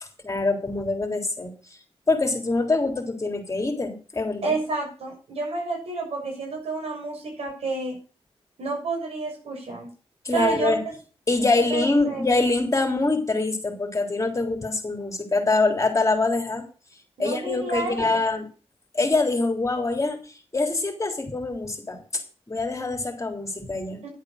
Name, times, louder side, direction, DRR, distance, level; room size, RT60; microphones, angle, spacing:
voice 1, 0.2-1.5 2.1-4.5 10.3-10.8 11.3-16.6 17.2-18.5 18.9-20.2 20.5-22.2 22.5-24.1, left 3 dB, 30° left, 3 dB, 3.6 m, -24 dB
voice 2, 4.4-8.0 8.6-9.9 10.3-10.9 11.7-12.2 17.2-18.2 24.0-24.1, right 3 dB, 80° right, 1 dB, 6.7 m, -30 dB
11.5 x 8.2 x 6.6 m, 0.38 s
cardioid pair, 80°, 10 cm